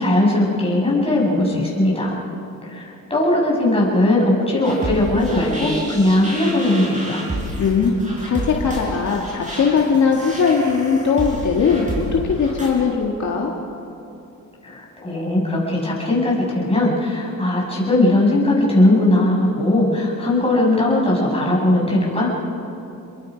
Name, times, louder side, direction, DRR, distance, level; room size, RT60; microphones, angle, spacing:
voice 1, 0.0-2.2 2.6-7.2 14.6-22.3, left 1 dB, 15° left, -4 dB, 6.9 m, -19 dB
sound 1, 4.6-12.7, right 1 dB, 20° right, 7.0 m, -30 dB
voice 2, 7.6-7.9 8.2-13.5, left 5 dB, 55° left, -1 dB, 2.0 m, -19 dB
29.5 x 22.0 x 5.2 m, 2.8 s
cardioid pair, 115°, 34 cm